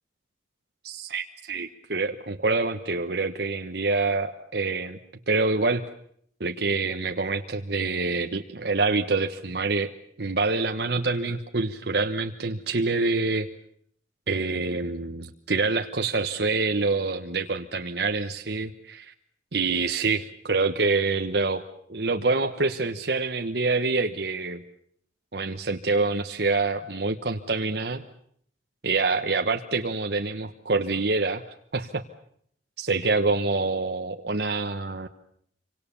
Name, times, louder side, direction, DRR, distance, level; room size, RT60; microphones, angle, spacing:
voice 1, 0.8-5.0 5.3-5.9 6.4-9.9 10.2-13.5 14.3-19.1 19.5-21.6 21.9-24.6 25.3-28.0 28.8-31.4 31.7-32.0 32.8-35.1, right 3 dB, 60° right, 5 dB, 1.2 m, -26 dB
27.5 x 25.0 x 7.1 m, 0.66 s
head